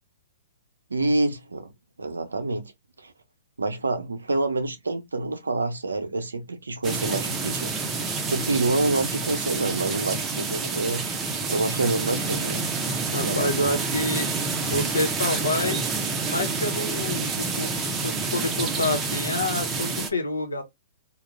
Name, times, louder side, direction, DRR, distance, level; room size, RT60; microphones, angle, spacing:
voice 1, 0.9-1.7 2.0-2.7 3.0-3.1 3.6-7.7 8.0-11.2 11.5-12.7 13.2-13.5, right 2 dB, 85° right, 0.6 m, -27 dB
sound 1, 6.8-20.1, right 4 dB, 20° right, 0.5 m, -28 dB
voice 2, 13.1-14.3 14.7-15.8 16.2-17.7 18.0-20.6, left 2 dB, 85° left, 0.8 m, -28 dB
2.3 x 2.1 x 3.2 m
hypercardioid pair, 120°, 0 cm